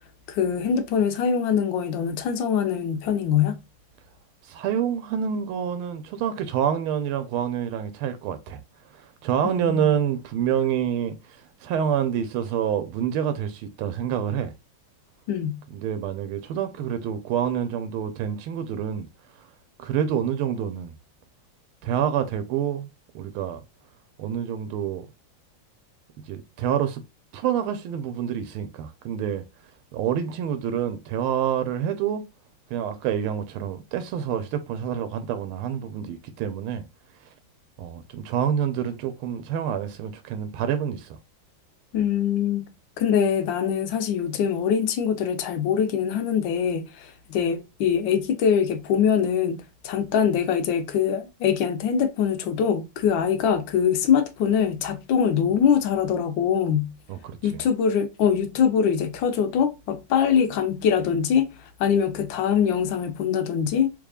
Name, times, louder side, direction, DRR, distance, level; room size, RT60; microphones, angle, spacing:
voice 1, 0.3-3.6 9.4-9.9 15.3-15.6 41.9-42.7 43.0-56.9 57.4-61.5 61.8-63.9, left 7 dB, 75° left, 1.2 m, -23 dB
voice 2, 4.5-8.6 8.9-14.5 15.7-19.1 19.8-20.9 21.8-22.9 23.1-23.6 24.2-25.1 26.3-27.0 27.3-29.4 29.9-32.2 32.7-36.8 37.8-41.2 57.1-57.6, right 9 dB, 90° right, 1.5 m, -27 dB
3.6 x 3.3 x 2.3 m
omnidirectional pair, 2.3 m